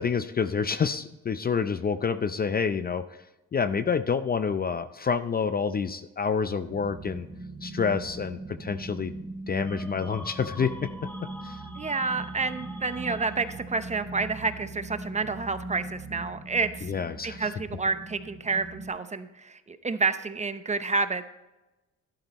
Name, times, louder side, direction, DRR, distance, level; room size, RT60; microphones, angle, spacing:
voice 1, 0.0-3.1 3.5-7.3 7.6-9.1 9.5-10.9 11.4-11.6 16.9-17.5, left 6 dB, 30° left, 12 dB, 0.5 m, -28 dB
sound 1, 6.7-18.9, right 2 dB, 45° right, 1.6 m, -40 dB
sound 2, 9.6-13.8, left 1 dB, 5° left, 1.3 m, -45 dB
voice 2, 11.8-16.9 17.2-21.3, right 4 dB, 25° right, 11 dB, 0.8 m, -29 dB
12.5 x 11.5 x 3.0 m, 1.0 s
cardioid pair, 90°, 30 cm